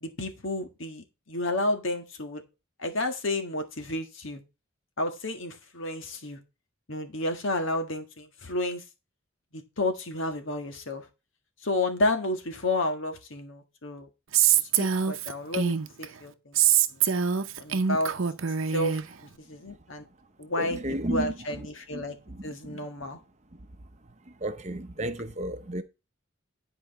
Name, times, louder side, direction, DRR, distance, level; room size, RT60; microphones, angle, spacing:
voice 1, 0.0-2.4 2.8-4.4 5.0-6.4 6.9-8.8 9.5-11.0 11.6-14.1 14.6-16.6 16.9-17.0 17.6-18.1 18.7-19.0 19.5-20.0 20.4-22.2 22.4-23.2, left 2 dB, 70° left, 1.7 m, -31 dB
Female speech woman speaking, 14.3-16.1 16.6-19.0, right 8 dB, 75° right, 0.7 m, -24 dB
voice 2, 20.6-21.3 21.9-22.0 22.7-22.8 24.4-25.8, right 1 dB, 35° right, 0.8 m, -32 dB
10.5 x 4.8 x 4.2 m
head